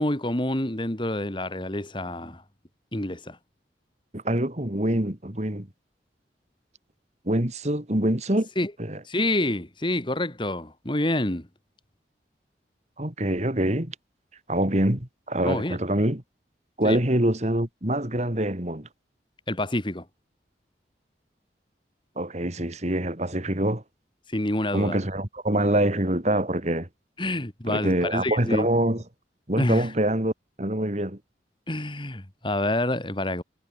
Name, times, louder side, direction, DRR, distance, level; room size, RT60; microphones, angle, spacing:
voice 1, 0.0-2.4 2.9-3.4 8.6-8.7 9.1-11.5 15.4-15.8 16.8-17.0 19.5-20.0 24.3-25.0 27.2-28.7 29.6-29.9 31.7-33.4, left 1 dB, 30° left, 2.7 m, -27 dB
voice 2, 4.1-5.7 7.3-8.5 8.8-9.0 13.0-13.9 14.5-16.2 16.8-18.9 22.2-23.8 24.7-26.9 27.7-29.0 29.5-30.3 30.6-31.2, right 1 dB, 40° right, 2.8 m, -25 dB
head